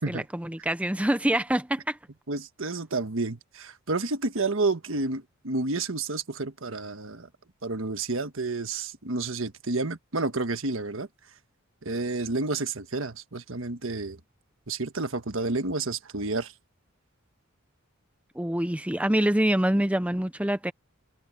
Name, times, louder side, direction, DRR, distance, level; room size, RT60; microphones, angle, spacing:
voice 1, 0.0-2.0 18.4-20.7, right 1 dB, 5° right, 0.6 m, -25 dB
voice 2, 2.3-7.3 7.6-11.1 11.8-14.2 14.7-16.5, right 3 dB, 65° right, 1.4 m, -30 dB
head